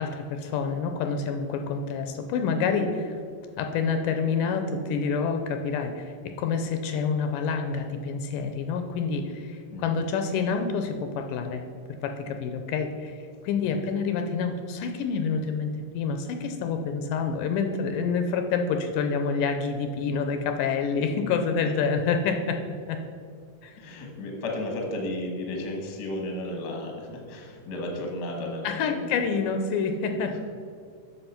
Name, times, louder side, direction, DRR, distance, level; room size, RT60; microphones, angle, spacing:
voice 1, 0.0-3.2 3.6-11.6 12.0-13.2 13.4-22.6 22.9-23.0 23.6-23.8 28.6-30.4, left 5 dB, 80° left, 6 dB, 2.2 m, -27 dB
voice 2, 9.7-10.0 21.7-21.8 23.8-29.2 30.2-30.4, left 1 dB, 50° left, 1 dB, 1.2 m, -34 dB
7.9 x 6.5 x 5.7 m, 2.3 s
omnidirectional pair, 4.0 m